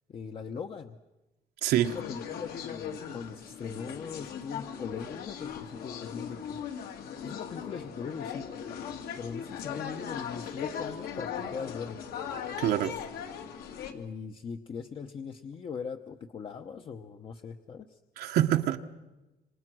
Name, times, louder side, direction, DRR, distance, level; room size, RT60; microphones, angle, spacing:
voice 1, 0.1-1.0 1.9-6.6 7.2-8.5 9.2-12.0 13.9-18.0, left 6 dB, 35° left, 6 dB, 0.9 m, -40 dB
voice 2, 1.6-1.9 12.6-12.9 18.2-18.8, right 12 dB, 80° right, 4 dB, 1.2 m, -25 dB
sound 1, 1.8-13.9, left 7 dB, 70° left, 2.2 m, -39 dB
27.5 x 25.5 x 6.2 m, 1.1 s
cardioid pair, 175°, 16 cm